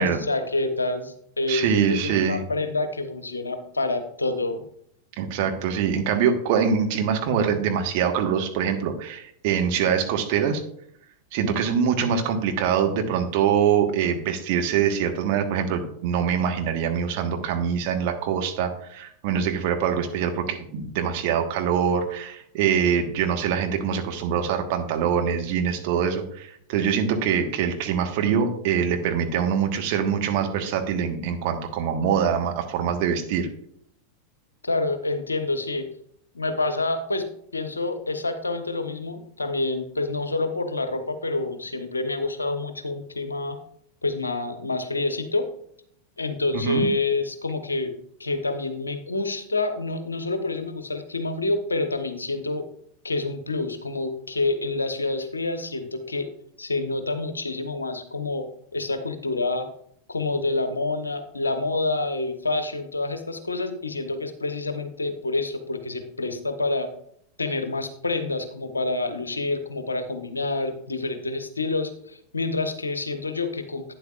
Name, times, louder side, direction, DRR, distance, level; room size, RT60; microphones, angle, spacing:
voice 1, 0.0-4.6 34.6-35.8 36.3-37.3 37.5-43.6 44.0-45.5 46.2-47.9 48.2-52.6 53.0-56.3 56.6-58.4 58.7-59.7 60.1-66.9 67.4-73.8, left 2 dB, 80° left, 8 dB, 1.0 m, -27 dB
voice 2, 1.5-2.4 5.2-10.6 11.3-33.5 46.5-46.9, right 7 dB, 45° right, 5 dB, 1.4 m, -24 dB
11.5 x 9.5 x 2.5 m, 0.67 s
figure-of-eight pair, 90°, 0 cm